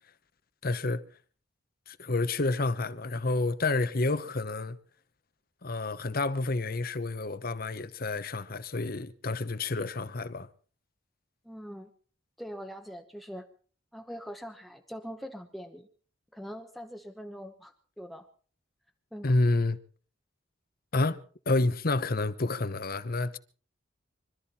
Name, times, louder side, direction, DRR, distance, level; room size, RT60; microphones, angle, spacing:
voice 1, 0.6-1.0 1.9-4.8 5.6-10.5 19.2-19.8 20.9-23.4, left 2 dB, 50° left, 1.0 m, -29 dB
voice 2, 11.4-11.9 12.4-13.5 13.9-15.9 16.3-18.3 19.1-19.3, equal, ahead, 1.0 m, -42 dB
25.5 x 13.0 x 4.3 m
head